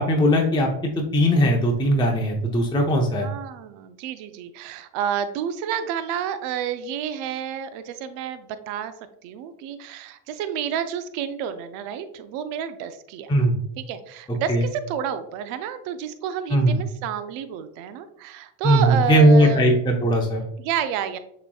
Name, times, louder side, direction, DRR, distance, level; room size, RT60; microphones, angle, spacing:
voice 1, 0.0-3.3 13.3-13.6 14.5-14.7 16.5-16.8 18.6-20.4, equal, 10° left, 0 dB, 0.6 m, -19 dB
voice 2, 3.2-8.9 9.2-13.3 13.9-19.7 20.6-21.2, right 8 dB, 85° right, 11 dB, 0.6 m, -30 dB
6.7 x 3.1 x 2.3 m, 0.73 s
supercardioid pair, 80°, 50 cm